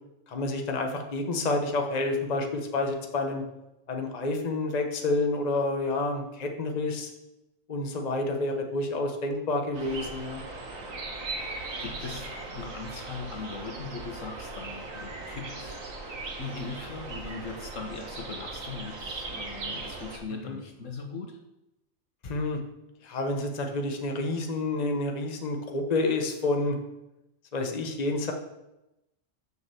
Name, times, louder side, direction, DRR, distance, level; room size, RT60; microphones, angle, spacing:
voice 1, 0.3-3.4 3.9-7.1 7.7-10.4 20.4-20.6 22.2-22.6 23.0-26.8 27.5-28.3, left 2 dB, 35° left, 3 dB, 1.1 m, -29 dB
sound 1, 9.7-20.2, right 3 dB, 85° right, 1.8 m, -38 dB
voice 2, 11.1-15.8 16.1-21.4, left 4 dB, 75° left, 3 dB, 1.7 m, -40 dB
7.0 x 6.6 x 6.9 m, 0.93 s
omnidirectional pair, 1.3 m